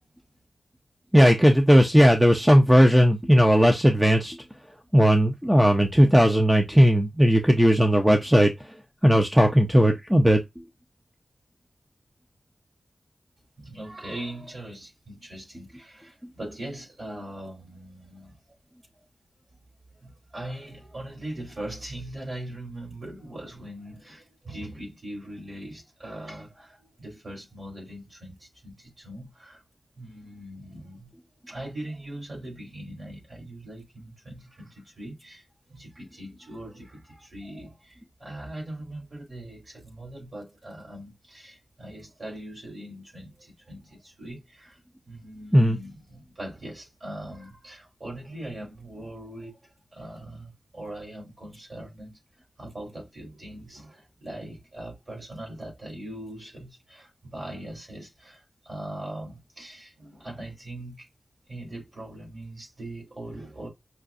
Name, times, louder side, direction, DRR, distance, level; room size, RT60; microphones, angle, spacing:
voice 1, 1.1-4.4 4.9-8.5 9.0-10.4 45.5-45.8, equal, 5° right, 0.6 m, -17 dB
voice 2, 13.6-18.4 20.0-29.6 29.9-31.1 31.5-35.4 35.7-44.8 45.0-52.2 52.6-61.1 61.5-63.7, right 1 dB, 40° right, 3.1 m, -41 dB
5.8 x 2.5 x 2.5 m
wide cardioid pair, 125°, 0 cm